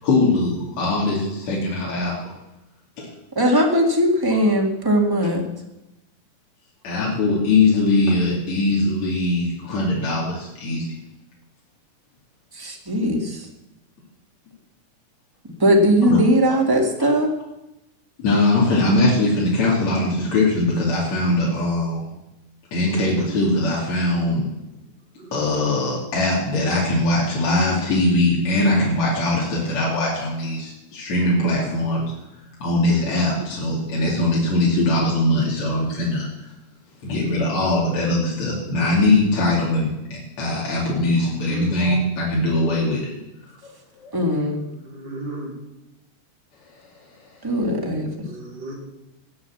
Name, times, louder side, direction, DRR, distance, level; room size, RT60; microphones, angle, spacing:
voice 1, 0.0-2.3 3.0-3.1 4.3-4.4 6.8-10.9 16.1-16.2 17.0-17.1 18.2-22.1 22.7-24.5 25.3-32.1 32.6-36.3 37.0-43.0 43.6-44.2, left 2 dB, 60° left, -5 dB, 3.9 m, -21 dB
voice 2, 3.3-5.4 12.6-13.4 15.6-17.3 44.1-44.6 47.4-48.1, equal, 10° right, 1 dB, 1.3 m, -19 dB
voice 3, 41.4-41.8 44.8-45.5 48.2-48.8, right 2 dB, 35° right, -2 dB, 3.8 m, -35 dB
17.0 x 7.5 x 7.2 m, 0.95 s
omnidirectional pair, 3.5 m